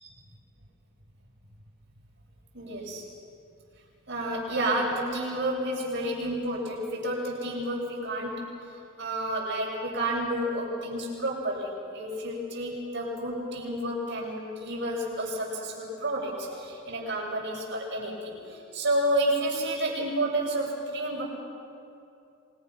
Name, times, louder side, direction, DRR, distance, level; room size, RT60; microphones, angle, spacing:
voice 1, 2.5-3.1 4.1-8.4 9.0-21.2, right 1 dB, 65° right, -2 dB, 7.3 m, -30 dB
27.5 x 26.0 x 5.9 m, 2.6 s
head